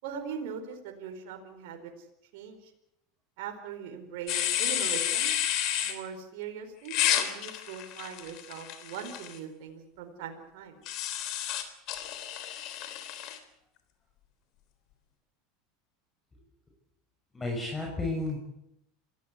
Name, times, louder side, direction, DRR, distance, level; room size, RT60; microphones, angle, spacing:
voice 1, 0.0-1.9 2.3-2.7 3.4-5.3 5.8-10.8, right 7 dB, 70° right, 4 dB, 4.6 m, -40 dB
sound 1, 4.3-5.9 6.9-9.4 10.9-13.4, left 11 dB, 55° left, 3.6 m, -30 dB
voice 2, 17.3-18.4, left 2 dB, 20° left, 0 dB, 6.6 m, -32 dB
26.5 x 17.0 x 8.3 m, 0.79 s
hypercardioid pair, 90°, 0 cm